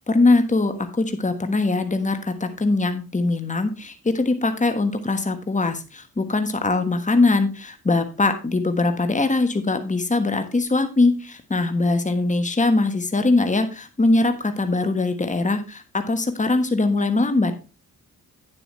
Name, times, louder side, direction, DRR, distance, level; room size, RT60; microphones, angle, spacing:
voice 1, 0.1-17.5, left 3 dB, 20° left, 8 dB, 1.4 m, -21 dB
9.2 x 7.8 x 3.2 m, 0.32 s
supercardioid pair, 50°, 36 cm